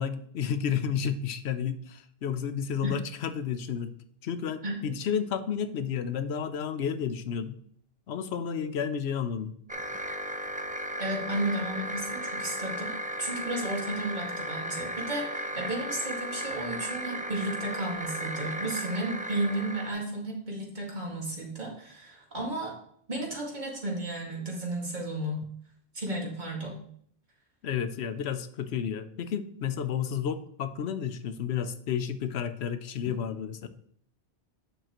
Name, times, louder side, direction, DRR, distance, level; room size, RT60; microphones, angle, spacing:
voice 1, 0.0-3.9 4.2-7.6 8.1-9.5 27.6-33.7, left 8 dB, 90° left, 11 dB, 1.0 m, -31 dB
voice 2, 4.6-4.9 11.0-12.9 13.2-22.7 23.1-25.4 25.9-26.8, right 1 dB, 45° right, -2 dB, 2.1 m, -33 dB
sound 1, 9.7-19.9, right 1 dB, 10° right, 0.4 m, -35 dB
9.0 x 6.6 x 3.0 m, 0.64 s
omnidirectional pair, 1.1 m